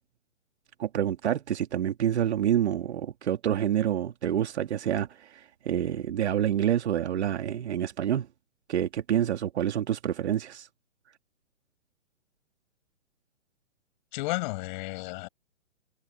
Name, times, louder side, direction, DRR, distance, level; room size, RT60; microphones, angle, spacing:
voice 1, 0.8-8.3 8.7-10.7, right 10 dB, 60° right, 2.4 m, -27 dB
voice 2, 14.1-15.3, left 23 dB, 35° left, 7.4 m, -32 dB
hypercardioid pair, 135°, 38 cm